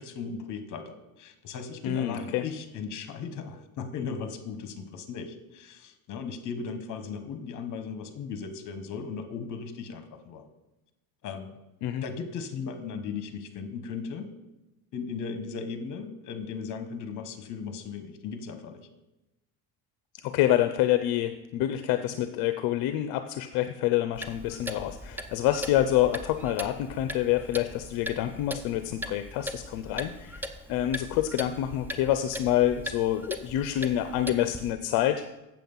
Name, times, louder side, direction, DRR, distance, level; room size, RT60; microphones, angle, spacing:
voice 1, 0.0-10.4 11.2-11.6 12.0-14.3 14.9-18.9, left 5 dB, 50° left, 9 dB, 1.2 m, -37 dB
voice 2, 1.8-2.4 11.8-12.0 20.2-30.4 30.7-35.2, left 12 dB, 70° left, 10 dB, 0.6 m, -27 dB
Clock, 24.1-34.7, equal, 5° right, 0.4 m, -40 dB
7.6 x 7.4 x 5.4 m, 0.99 s
cardioid pair, 125°, 37 cm